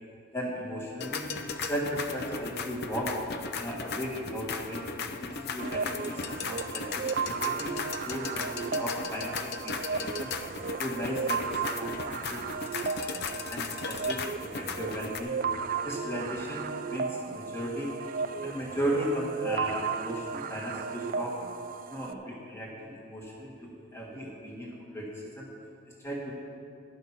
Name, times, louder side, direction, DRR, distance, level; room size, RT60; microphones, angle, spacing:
voice 1, 0.3-1.3 1.6-3.2 3.6-7.8 8.1-9.4 9.6-10.3 10.8-12.6 13.1-15.4 15.8-17.9 18.4-21.4 21.9-25.1 25.4-25.5 26.0-26.3, equal, 10° left, -3 dB, 1.8 m, -36 dB
sound 1, 1.0-15.2, left 5 dB, 45° left, 0.5 m, -37 dB
sound 2, 5.6-22.1, right 5 dB, 40° right, 0.3 m, -35 dB
11.5 x 8.9 x 5.9 m, 2.4 s
head